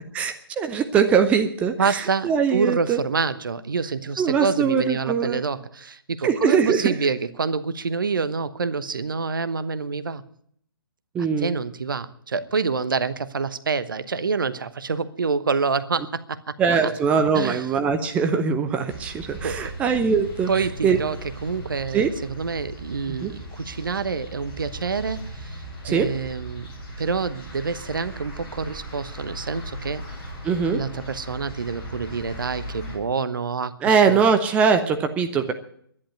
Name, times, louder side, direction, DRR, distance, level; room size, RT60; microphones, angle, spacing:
voice 1, 0.1-3.0 4.2-5.4 6.2-6.9 11.1-11.5 16.6-21.0 21.9-22.1 23.1-23.3 25.8-26.1 30.4-30.8 33.8-35.5, right 6 dB, 10° right, 8 dB, 0.8 m, -22 dB
voice 2, 1.8-10.2 11.4-16.5 16.8-16.9 17.3-17.7 19.4-19.7 20.5-21.2 21.4-26.7 27.0-30.0 30.7-34.2, right 5 dB, 60° right, 15 dB, 1.0 m, -27 dB
sound 1, 18.9-33.0, right 1 dB, 25° left, 6.1 m, -38 dB
11.5 x 11.0 x 9.5 m, 0.65 s
figure-of-eight pair, 135°, 13 cm